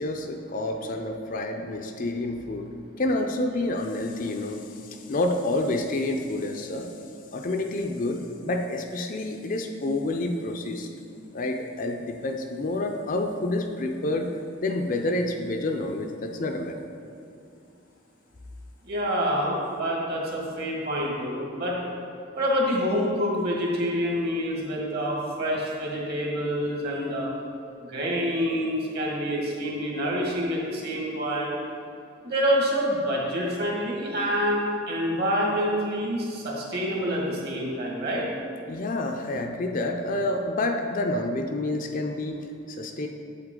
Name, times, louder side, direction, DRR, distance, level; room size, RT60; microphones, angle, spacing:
voice 1, 0.0-2.7 3.0-6.9 7.3-10.9 11.3-16.7 38.7-43.1, left 2 dB, 40° left, 4 dB, 0.5 m, -28 dB
voice 2, 18.8-21.8 22.3-27.3 27.8-31.6 32.2-38.3, equal, 50° right, -2 dB, 1.8 m, -27 dB
8.0 x 7.7 x 3.8 m, 2.4 s
head